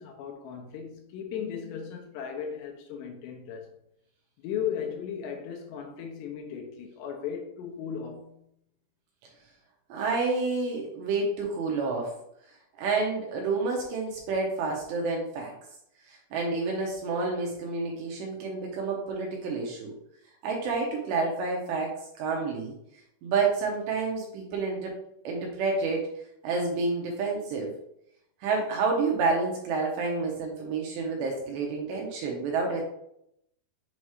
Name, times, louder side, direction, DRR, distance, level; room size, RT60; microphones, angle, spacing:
voice 1, 0.0-3.7 4.4-8.4, left 8 dB, 85° left, 2.7 m, -36 dB
voice 2, 9.9-12.1 12.8-15.5 16.1-19.9 20.4-22.7 23.2-24.9 25.2-26.0 26.4-27.7 28.4-32.8, right 4 dB, 75° right, 2.7 m, -29 dB
7.2 x 2.9 x 4.7 m
omnidirectional pair, 5.4 m